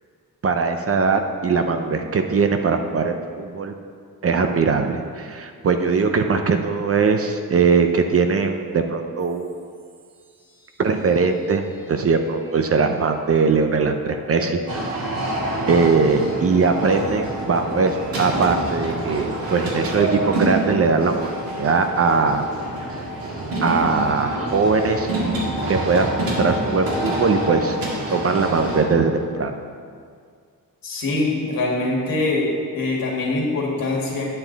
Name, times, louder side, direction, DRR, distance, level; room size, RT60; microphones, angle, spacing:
voice 1, 0.4-3.7 4.2-9.5 10.8-15.2 15.7-21.3 21.6-22.4 22.9-23.0 23.6-25.1 25.7-27.8 28.1-29.5, right 4 dB, 40° right, 6 dB, 0.5 m, -20 dB
sound 1, 9.2-17.3, right 1 dB, 15° right, 2.3 m, -40 dB
sound 2, 14.7-28.8, right 1 dB, 75° right, 1.8 m, -27 dB
voice 2, 30.8-32.5 32.7-34.3, left 2 dB, 65° left, -2 dB, 1.9 m, -23 dB
9.4 x 7.7 x 4.0 m, 2.1 s
wide cardioid pair, 175°, 36 cm